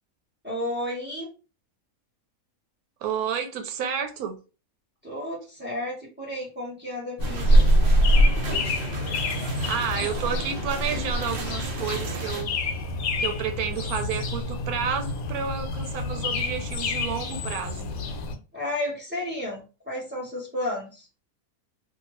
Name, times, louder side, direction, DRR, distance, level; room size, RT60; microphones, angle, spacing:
voice 1, 0.4-1.3 5.0-7.6 18.5-21.1, left 1 dB, 10° right, 0.9 m, -32 dB
voice 2, 3.0-4.4 9.6-12.6 13.2-17.9, right 7 dB, 85° right, 1.1 m, -30 dB
sound 1, 7.2-18.4, equal, 75° left, 1.0 m, -25 dB
sound 2, 7.2-12.4, right 4 dB, 60° right, 0.6 m, -37 dB
2.7 x 2.3 x 3.0 m
omnidirectional pair, 1.5 m